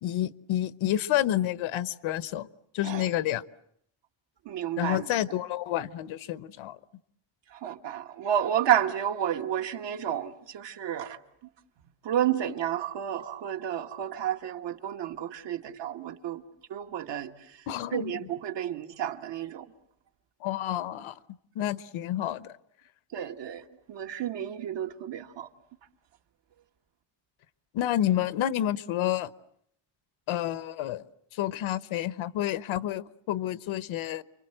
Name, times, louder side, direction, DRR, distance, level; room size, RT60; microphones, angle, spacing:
voice 1, 0.0-2.5 2.7-3.4 4.8-6.8 17.7-18.3 20.4-21.2 21.5-22.6 27.7-29.3 30.3-31.0 31.3-34.2, left 12 dB, 75° left, 1.0 m, -29 dB
voice 2, 4.4-5.1 7.5-11.2 12.0-16.4 16.7-17.6 17.9-19.7 23.1-25.5, right 10 dB, 60° right, 1.6 m, -31 dB
30.0 x 24.5 x 7.8 m
cardioid pair, 165°, 48 cm